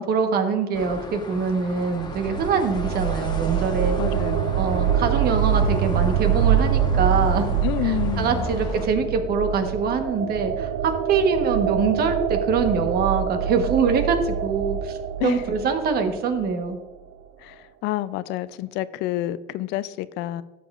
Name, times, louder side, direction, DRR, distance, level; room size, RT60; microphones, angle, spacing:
voice 1, 0.0-4.0 4.6-7.5 7.8-16.8, right 5 dB, 65° right, 6 dB, 1.2 m, -24 dB
sound 1, 0.7-8.9, left 2 dB, 25° left, 1.1 m, -35 dB
sound 2, 1.7-16.5, right 8 dB, 85° right, 0.5 m, -25 dB
voice 2, 4.0-4.6 7.6-8.5 15.2-15.4 17.4-20.4, left 15 dB, 90° left, 15 dB, 0.4 m, -28 dB
12.5 x 6.8 x 2.4 m, 1.1 s
cardioid pair, 110°, 17 cm